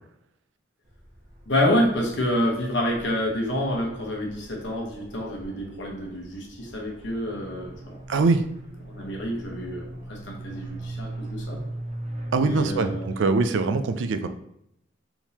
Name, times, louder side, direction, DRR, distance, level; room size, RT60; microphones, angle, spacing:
sound 1, 0.9-13.2, right 1 dB, 45° right, 1.2 m, -40 dB
voice 1, 1.5-8.0 8.8-11.6 12.3-13.2, equal, 70° left, -1 dB, 1.1 m, -28 dB
voice 2, 8.1-8.4 12.3-14.3, right 3 dB, 75° right, 9 dB, 0.4 m, -23 dB
4.5 x 3.6 x 2.9 m, 0.76 s
head